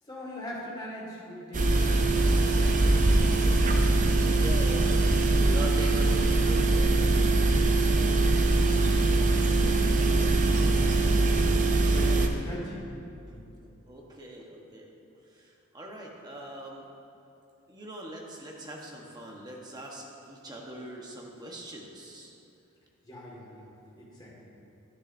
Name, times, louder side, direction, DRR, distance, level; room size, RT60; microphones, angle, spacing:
voice 1, 0.0-3.0 9.2-11.4 11.9-13.5 23.0-24.5, left 1 dB, 20° left, -5 dB, 1.7 m, -43 dB
sound 1, 1.5-12.3, right 2 dB, 35° right, 0.6 m, -22 dB
voice 2, 4.3-5.0 5.3-7.0 13.9-14.9 15.3-16.9 17.7-22.3, right 1 dB, 20° right, -1 dB, 1.1 m, -41 dB
10.5 x 9.8 x 2.6 m, 2.6 s
head